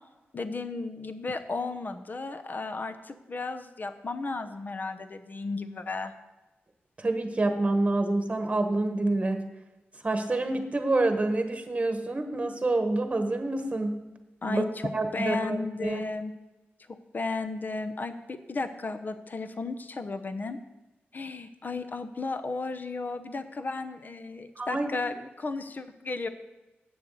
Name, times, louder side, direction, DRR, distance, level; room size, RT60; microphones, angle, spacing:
voice 1, 0.3-6.1 14.4-16.3 16.9-20.6 21.1-26.3, left 3 dB, 45° left, 10 dB, 0.9 m, -34 dB
voice 2, 7.0-9.4 10.0-14.0 14.5-14.6 14.9-16.0 24.6-24.9, right 2 dB, 30° right, 6 dB, 1.3 m, -27 dB
8.1 x 6.9 x 7.8 m, 1.1 s
cardioid pair, 70°, 4 cm